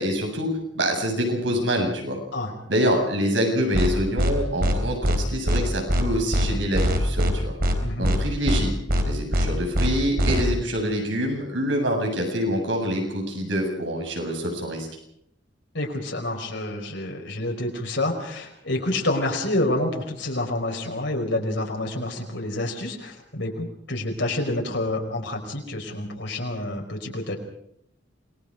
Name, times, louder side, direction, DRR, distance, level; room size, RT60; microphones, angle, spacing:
voice 1, 0.0-2.2 2.7-7.5 8.0-8.7 9.0-14.9, equal, 75° right, 2 dB, 7.9 m, -26 dB
sound 1, 3.7-3.9 4.2-4.3 4.6-4.7 5.0-5.2 5.5-5.6 5.9-6.0 6.3-6.5 6.7-7.3 7.6-7.7 8.0-8.2 8.5-8.6 8.9-9.0 9.3-9.5 9.7-9.9 10.2-10.4, equal, 50° right, 4.2 m, -21 dB
voice 2, 7.8-8.1 15.7-27.3, left 1 dB, 70° left, 1 dB, 5.0 m, -28 dB
28.0 x 21.5 x 5.1 m, 0.72 s
head